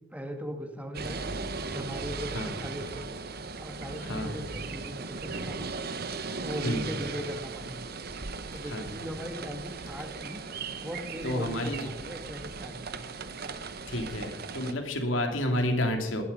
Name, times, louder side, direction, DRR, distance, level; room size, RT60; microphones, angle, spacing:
voice 1, 0.1-1.2 1.6-3.1 3.6-5.7 6.4-7.8 8.5-10.4 10.8-13.2, equal, 10° right, 4 dB, 2.0 m, -39 dB
sound 1, 0.9-14.7, right 4 dB, 55° right, 1.1 m, -37 dB
voice 2, 4.0-4.4 6.6-6.9 8.6-9.0 11.2-11.9 13.9-16.2, left 1 dB, 85° left, 4 dB, 2.8 m, -30 dB
19.0 x 12.0 x 5.6 m, 1.1 s
head